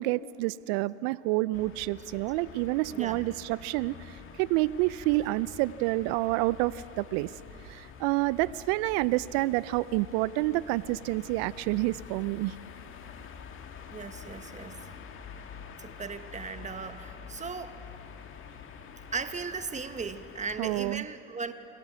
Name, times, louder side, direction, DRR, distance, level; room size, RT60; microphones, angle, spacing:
voice 1, 0.0-7.4 7.6-12.6 20.6-21.1, right 19 dB, 60° right, 19 dB, 0.6 m, -28 dB
sound 1, 1.5-21.0, left 7 dB, 35° left, 2.0 m, -47 dB
voice 2, 2.9-3.3 13.9-14.8 15.8-17.7 19.1-21.5, right 5 dB, 20° right, 9 dB, 1.3 m, -37 dB
28.5 x 22.5 x 6.3 m, 2.8 s
hypercardioid pair, 85°, 34 cm